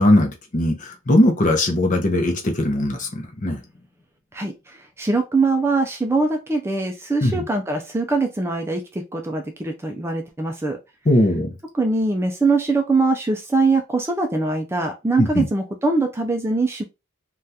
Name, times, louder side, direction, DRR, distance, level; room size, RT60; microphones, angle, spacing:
voice 1, 0.0-3.6 7.2-7.4 11.1-11.5 15.2-15.5, left 1 dB, 35° left, 0.7 m, -19 dB
voice 2, 4.3-10.8 11.7-16.8, right 3 dB, 10° right, 0.3 m, -22 dB
3.5 x 2.3 x 2.7 m
head